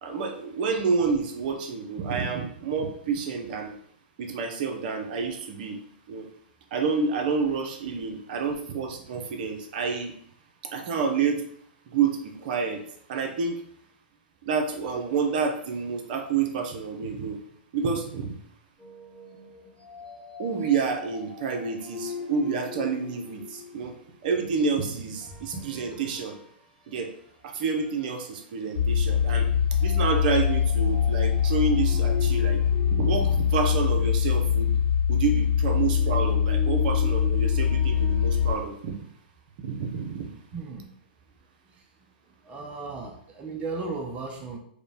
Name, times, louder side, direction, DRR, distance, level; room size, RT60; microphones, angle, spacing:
voice 1, 0.0-3.8 4.2-5.8 6.1-6.3 6.7-10.1 10.7-11.5 11.9-12.8 13.1-13.6 14.5-17.4 17.7-18.3 20.4-24.0 24.2-26.4 26.9-27.1 27.4-29.5 29.8-32.6 32.9-34.7 35.1-38.9 39.6-40.3, right 5 dB, 55° right, 3 dB, 0.8 m, -28 dB
sound 1, 18.8-24.1 25.2-26.5 26.9-27.1 27.7-28.2 29.8-34.2 35.5-38.6, left 4 dB, 10° left, 1.3 m, -41 dB
sound 2, 28.8-38.5, left 8 dB, 75° left, 0.4 m, -23 dB
voice 2, 40.5-40.9 41.7-41.8 42.4-44.6, right 4 dB, 25° right, 1 dB, 0.6 m, -35 dB
4.9 x 2.3 x 3.4 m, 0.63 s
hypercardioid pair, 120°, 6 cm